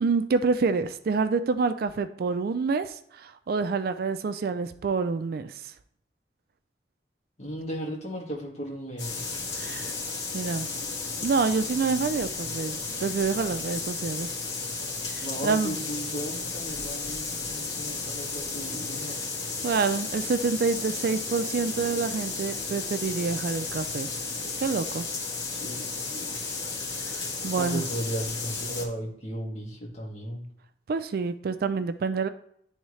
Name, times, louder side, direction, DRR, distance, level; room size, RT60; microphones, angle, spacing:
voice 1, 0.0-5.7 9.5-10.0 10.3-10.7 11.2-14.4 15.1-15.8 19.6-24.1 24.6-25.1 26.9-27.8 30.9-32.3, right 4 dB, 55° right, 11 dB, 0.4 m, -27 dB
voice 2, 7.4-9.2 15.2-19.2 25.5-25.8 26.1-26.4 27.5-30.4, equal, 40° left, -2 dB, 1.8 m, -35 dB
sound 1, 9.0-28.8, left 4 dB, 85° left, 1.7 m, -33 dB
10.5 x 3.6 x 3.2 m, 0.68 s
head